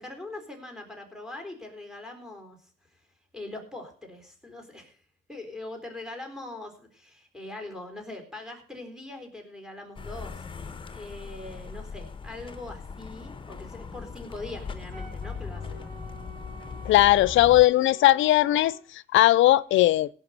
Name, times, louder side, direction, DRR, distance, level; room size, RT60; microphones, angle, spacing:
voice 1, 0.0-2.7 3.3-5.0 5.3-15.9, left 2 dB, 5° right, 4.0 m, -42 dB
sound 1, 10.0-17.6, left 5 dB, 25° left, 1.0 m, -39 dB
Wind instrument woodwind instrument, 14.9-18.8, right 1 dB, 40° right, 3.1 m, -48 dB
voice 2, 16.9-20.1, left 15 dB, 80° left, 0.5 m, -19 dB
17.0 x 5.7 x 6.6 m
cardioid pair, 90°, 20 cm